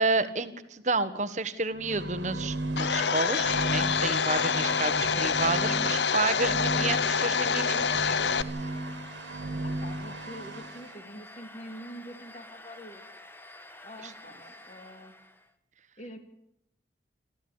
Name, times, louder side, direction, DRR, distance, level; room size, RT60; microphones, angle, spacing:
voice 1, 0.0-8.2 8.6-8.7 14.0-14.1, right 3 dB, 40° right, 12 dB, 1.5 m, -30 dB
sound 1, 1.7-10.8, right 1 dB, 80° right, 2.0 m, -35 dB
Domestic sounds home sounds, 2.8-8.4, left 6 dB, 75° left, 0.9 m, -26 dB
Domestic sounds home sounds 2, 3.4-15.5, left 1 dB, 10° left, 1.5 m, -49 dB
voice 2, 9.6-13.0 13.8-15.1 16.0-16.2, equal, 40° left, 7 dB, 3.0 m, -45 dB
27.0 x 14.0 x 8.9 m, 0.83 s
head